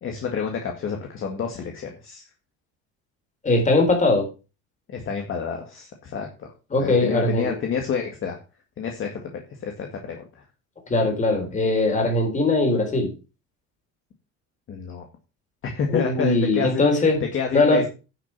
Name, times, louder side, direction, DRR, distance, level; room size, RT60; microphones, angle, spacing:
voice 1, 0.0-2.2 4.9-6.5 6.8-8.4 8.8-10.4 14.7-15.1 15.6-17.9, left 6 dB, 40° left, 3 dB, 1.9 m, -29 dB
voice 2, 3.4-4.3 6.7-7.5 10.9-13.1 15.9-17.2 17.5-17.8, left 2 dB, 25° left, 4 dB, 3.9 m, -20 dB
10.5 x 6.2 x 6.0 m, 0.32 s
cardioid pair, 145°, 31 cm